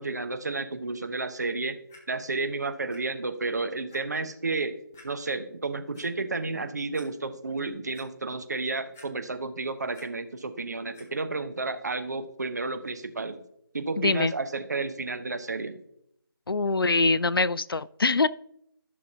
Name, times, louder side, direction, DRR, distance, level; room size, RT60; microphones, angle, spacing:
voice 1, 0.0-1.8 2.1-4.8 5.0-13.4 13.7-15.8, right 3 dB, 45° right, 9 dB, 0.9 m, -31 dB
Clock, 1.9-2.0 2.9-3.0 3.4-3.5 3.9-4.0 4.9-5.1 5.7-6.0 6.6-6.7 6.9-7.1 7.5-8.1 8.9-9.5 9.7-10.1 10.9-11.1 11.8-11.9, left 2 dB, 5° left, 0.4 m, -52 dB
voice 2, 14.0-14.3 16.5-18.3, left 3 dB, 75° left, 18 dB, 0.4 m, -24 dB
14.0 x 6.2 x 2.8 m, 0.72 s
figure-of-eight pair, 165°, 12 cm